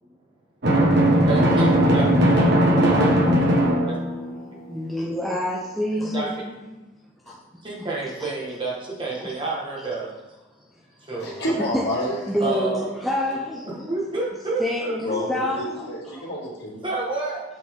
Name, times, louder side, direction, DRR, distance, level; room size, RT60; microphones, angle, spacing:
Drum, 0.6-4.4, equal, 55° right, 1.3 m, -18 dB
voice 1, 1.2-2.2 3.9-4.0 6.1-6.3 7.6-10.1 11.1-11.4 12.4-13.0 13.3-13.4 13.6-15.2 16.8-17.4, right 3 dB, 25° right, -4 dB, 1.6 m, -29 dB
voice 2, 4.7-6.8 9.2-9.3 11.7-11.8 12.3-13.9 14.6-16.3, left 1 dB, ahead, -5 dB, 0.7 m, -27 dB
voice 3, 11.2-12.2 15.0-15.3 15.6-16.8, equal, 55° left, -5 dB, 2.5 m, -28 dB
7.7 x 6.1 x 3.7 m, 1.1 s
head